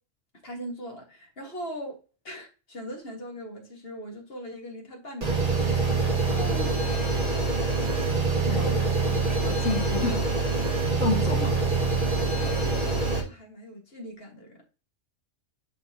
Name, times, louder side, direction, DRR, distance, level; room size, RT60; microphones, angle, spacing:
voice 1, 0.4-2.0 2.2-6.0 8.4-9.1 12.4-14.7, equal, 50° left, 1.9 m, -40 dB
sound 1, 5.2-13.2, right 3 dB, 40° right, 2.0 m, -25 dB
voice 2, 6.3-6.7 8.5-8.7 9.1-10.2 11.0-11.6, left 3 dB, 65° left, 2.5 m, -30 dB
10.5 x 3.9 x 2.8 m
omnidirectional pair, 1.3 m